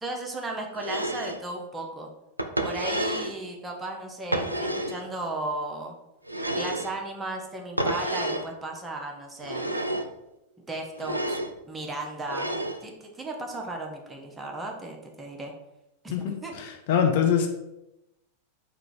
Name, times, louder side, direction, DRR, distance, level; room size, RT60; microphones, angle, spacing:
voice 1, 0.0-2.1 2.6-5.9 6.6-9.8 10.7-11.4 11.7-12.5 12.8-15.5 16.0-16.5, right 2 dB, 15° right, 1 dB, 0.7 m, -35 dB
sound 1, 0.8-1.4 2.4-3.4 4.3-5.0 6.3-7.0 7.8-8.5 9.4-10.1 11.0-11.5 12.3-12.8, right 1 dB, 85° right, 0.3 m, -29 dB
voice 2, 16.1-17.5, left 8 dB, 50° left, 3 dB, 0.6 m, -24 dB
3.7 x 2.4 x 4.6 m, 0.91 s
figure-of-eight pair, 90°, 0 cm